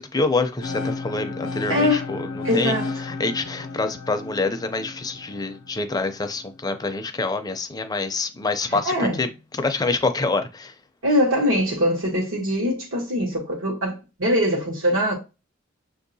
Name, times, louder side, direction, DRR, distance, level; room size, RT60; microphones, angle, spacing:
voice 1, 0.0-2.8 3.0-9.3 9.5-10.7, left 3 dB, 20° left, 0.4 m, -26 dB
sound 1, 0.6-6.5, left 3 dB, 75° left, 0.5 m, -33 dB
voice 2, 1.7-2.1 2.4-2.9 8.8-9.2 11.0-15.1, equal, 80° right, 1.2 m, -22 dB
6.5 x 2.7 x 2.7 m
head